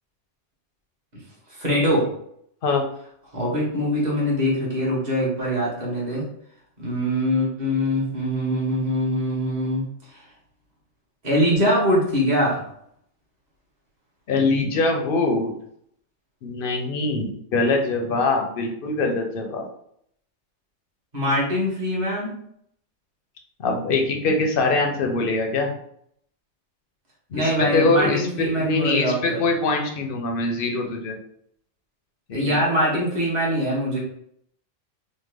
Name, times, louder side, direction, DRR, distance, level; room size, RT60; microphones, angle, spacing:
voice 1, 1.5-2.0 3.3-6.2 6.8-9.8 11.2-12.6 21.1-22.3 27.3-29.4 32.3-34.0, equal, 40° right, -5 dB, 1.2 m, -23 dB
voice 2, 14.3-15.5 16.4-19.7 23.6-25.7 27.3-31.2 32.3-32.6, left 3 dB, 60° left, 2 dB, 0.7 m, -23 dB
3.3 x 2.1 x 3.3 m, 0.69 s
omnidirectional pair, 1.2 m